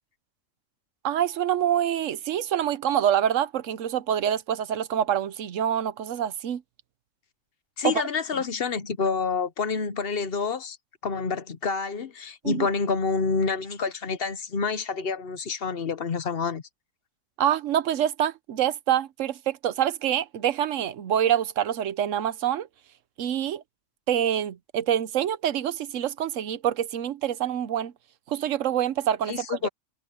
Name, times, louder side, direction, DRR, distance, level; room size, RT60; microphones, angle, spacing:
voice 1, 1.0-6.6 7.8-8.0 12.4-12.7 17.4-22.7 23.2-23.6 24.1-27.9 28.3-29.6, right 10 dB, 85° right, 1.1 m, -26 dB
voice 2, 7.8-10.8 11.0-16.6 29.3-29.7, left 5 dB, 55° left, 1.1 m, -28 dB
omnidirectional pair, 1.3 m